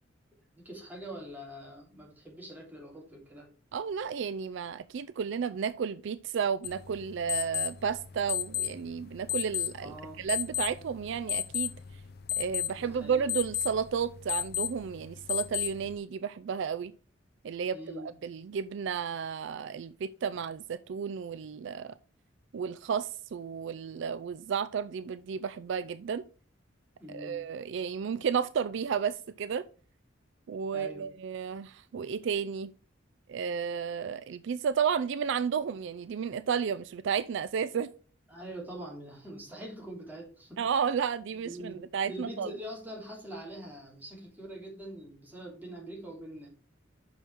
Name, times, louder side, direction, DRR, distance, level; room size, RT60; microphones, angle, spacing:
voice 1, 0.5-3.5 9.8-10.2 12.7-13.3 17.7-18.1 27.0-27.5 30.7-31.1 38.3-40.6 41.4-46.5, right 1 dB, 10° right, 2.9 m, -44 dB
voice 2, 3.7-11.7 12.4-16.9 17.4-21.9 22.5-26.2 27.1-29.6 30.5-32.7 33.3-37.9 40.6-42.5, right 7 dB, 65° right, 0.4 m, -32 dB
sound 1, 6.6-16.0, left 11 dB, 55° left, 0.6 m, -35 dB
6.4 x 5.6 x 4.4 m
head